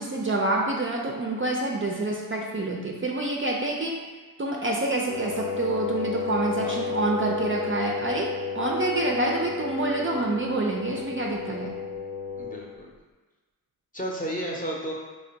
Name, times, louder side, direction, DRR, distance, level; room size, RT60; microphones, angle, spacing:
voice 1, 0.0-3.9 4.4-11.8, right 2 dB, 35° right, -1 dB, 0.4 m, -27 dB
Wind instrument woodwind instrument, 5.1-12.7, left 5 dB, 65° left, 0.6 m, -32 dB
voice 2, 6.6-6.9 9.4-9.6 12.4-12.9 13.9-14.9, right 1 dB, 20° left, -3 dB, 0.7 m, -33 dB
3.3 x 2.1 x 3.9 m, 1.3 s
wide cardioid pair, 60°, 37 cm